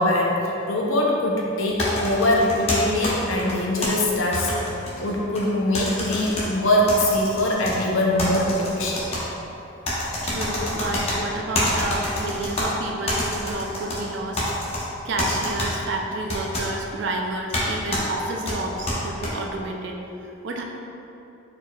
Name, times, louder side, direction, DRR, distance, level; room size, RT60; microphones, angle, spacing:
voice 1, 0.0-4.6 5.0-9.1 10.6-10.7, left 1 dB, 75° left, -2 dB, 0.6 m, -22 dB
sound 1, 1.8-3.9 4.3-5.4 5.7-6.4 6.9-7.7 8.2-9.2 9.8-11.2 11.5-12.7 13.1-14.0 14.4-14.8 15.2-15.7 16.3-16.7 17.5-17.6 17.9-18.0 18.5-19.3, left 1 dB, 30° left, 0.7 m, -27 dB
voice 2, 10.2-14.4 15.0-20.0 20.4-20.6, right 2 dB, 60° right, 1 dB, 0.4 m, -30 dB
4.3 x 4.2 x 2.3 m, 2.9 s
head